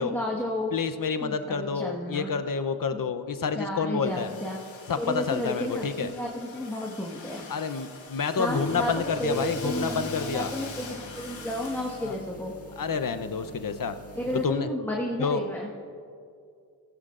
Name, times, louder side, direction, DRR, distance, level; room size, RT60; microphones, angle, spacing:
voice 1, 0.0-0.7 1.2-2.3 3.5-4.6 5.0-7.5 8.4-8.9 9.2-12.5 14.1-15.7, left 1 dB, 5° left, -3 dB, 1.5 m, -32 dB
voice 2, 0.7-4.3 4.9-6.1 7.5-10.5 12.0-12.1 12.8-14.0 14.3-14.7 15.2-15.4, left 5 dB, 45° left, 9 dB, 0.8 m, -29 dB
Domestic sounds home sounds, 4.0-12.3, left 5 dB, 80° left, 1.5 m, -44 dB
sound 1, 8.4-14.5, right 1 dB, 30° left, 1.8 m, -41 dB
15.5 x 14.0 x 2.5 m, 2.4 s
cardioid pair, 50°, 45 cm